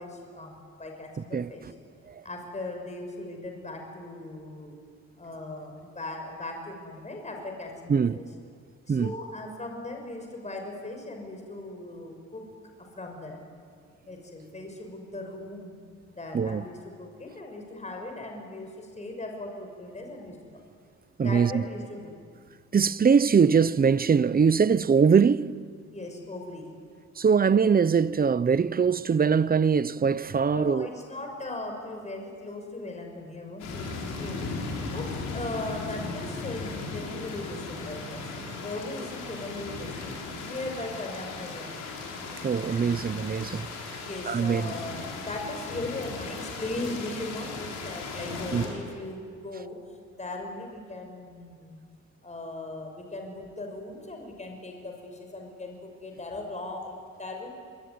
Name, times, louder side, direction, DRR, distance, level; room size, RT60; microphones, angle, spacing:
voice 1, 0.0-1.6 2.2-4.8 5.2-8.2 8.9-12.5 12.8-13.4 14.0-15.8 16.2-20.6 21.2-22.1 25.9-26.7 30.5-34.5 34.9-38.3 38.6-40.1 40.4-41.8 44.0-49.8 50.2-51.8 52.2-57.5, left 2 dB, 25° left, 6.0 m, -38 dB
voice 2, 16.3-16.6 21.2-21.6 22.7-25.6 27.2-30.9 42.4-43.7 44.3-44.7 48.5-48.6, right 6 dB, 30° right, 0.8 m, -22 dB
sound 1, 33.6-48.7, left 3 dB, 85° left, 6.3 m, -37 dB
26.5 x 22.5 x 9.6 m
cardioid pair, 90°, 30 cm